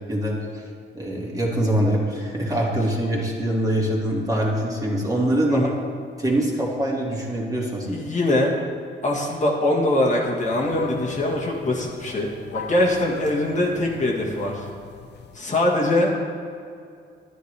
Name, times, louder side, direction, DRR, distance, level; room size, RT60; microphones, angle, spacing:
voice 1, 0.1-0.6 0.9-5.7 6.2-8.0, right 1 dB, 20° right, -4 dB, 2.2 m, -24 dB
voice 2, 7.8-8.5 9.0-14.7 15.3-16.2, left 1 dB, 40° left, -2 dB, 1.6 m, -22 dB
sound 1, 10.4-15.4, left 6 dB, 60° left, 0.6 m, -38 dB
10.0 x 9.8 x 3.4 m, 2.3 s
cardioid pair, 90°, 20 cm